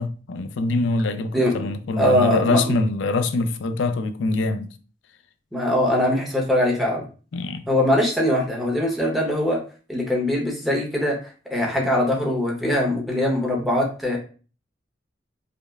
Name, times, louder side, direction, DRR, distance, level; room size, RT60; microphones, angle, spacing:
voice 1, 0.0-4.7 7.3-7.6, left 3 dB, 80° left, 0.4 m, -24 dB
voice 2, 1.3-1.7 2.0-2.7 5.5-7.1 7.7-9.6 9.9-14.2, left 1 dB, ahead, 0.8 m, -22 dB
5.0 x 2.1 x 2.3 m
head